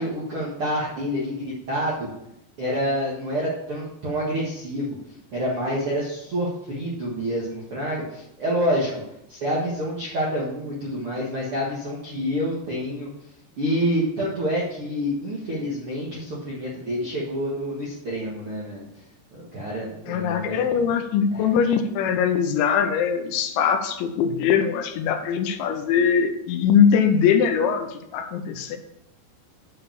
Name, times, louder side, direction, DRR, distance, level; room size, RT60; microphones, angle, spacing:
voice 1, 0.0-2.1 2.6-5.0 5.3-9.0 9.3-13.1 13.6-18.9 19.3-20.8 21.3-21.4, equal, 60° right, -6 dB, 1.4 m, -27 dB
voice 2, 20.1-28.8, left 7 dB, 85° left, 7 dB, 3.1 m, -21 dB
9.7 x 4.9 x 7.1 m, 0.83 s
omnidirectional pair, 5.3 m